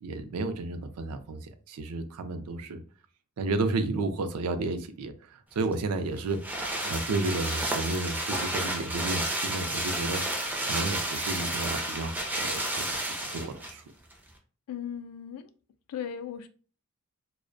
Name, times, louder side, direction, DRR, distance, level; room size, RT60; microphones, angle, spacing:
voice 1, 0.0-2.8 3.4-6.4 6.8-10.2 10.6-13.8, right 3 dB, 80° right, 0.4 m, -32 dB
sound 1, 5.6-13.8 14.1-14.2, right 1 dB, 10° right, 0.3 m, -31 dB
voice 2, 14.7-15.5 15.9-16.5, left 8 dB, 80° left, 0.3 m, -37 dB
2.4 x 2.0 x 2.5 m
head